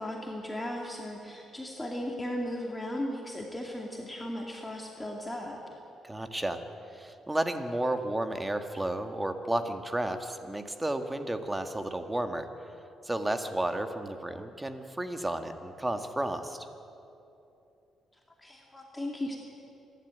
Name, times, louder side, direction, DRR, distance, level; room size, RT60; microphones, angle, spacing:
voice 1, 0.0-5.6 18.4-19.4, left 1 dB, 10° left, -1 dB, 2.4 m, -36 dB
voice 2, 6.0-6.6 6.9-12.5 13.0-16.7, right 1 dB, 15° right, 7 dB, 1.7 m, -32 dB
27.5 x 12.0 x 9.2 m, 2.8 s
cardioid pair, 90°, 0 cm